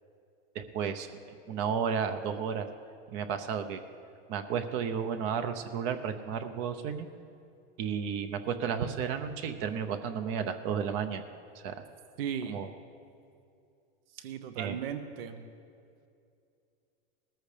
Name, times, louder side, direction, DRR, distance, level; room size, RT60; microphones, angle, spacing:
voice 1, 0.5-1.1 1.5-2.7 3.1-3.8 4.3-7.1 7.8-11.2 11.5-11.8 12.5-12.7 14.6-14.8, right 7 dB, 50° right, 8 dB, 0.8 m, -32 dB
voice 2, 12.2-12.6 14.1-15.4, right 8 dB, 80° right, 9 dB, 1.0 m, -36 dB
19.0 x 14.0 x 3.4 m, 2.5 s
supercardioid pair, 135°, 29 cm